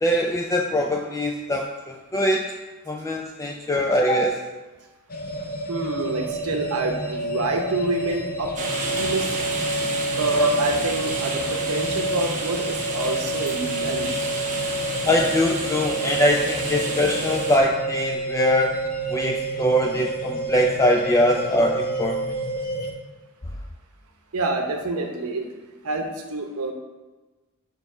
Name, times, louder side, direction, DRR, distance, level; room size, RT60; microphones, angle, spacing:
voice 1, 0.0-2.5 2.9-4.4 10.4-10.5 15.1-18.7 19.1-22.2, equal, 15° left, 1 dB, 0.4 m, -22 dB
sound 1, 5.1-22.9, right 1 dB, 40° left, 0.8 m, -29 dB
voice 2, 5.7-8.5 9.0-9.4 10.1-14.3 24.3-25.5 25.8-26.7, right 2 dB, 90° right, 3 dB, 0.7 m, -27 dB
sound 2, 8.6-17.6, right 3 dB, 35° right, 1.1 m, -31 dB
5.3 x 4.5 x 5.9 m, 1.2 s
head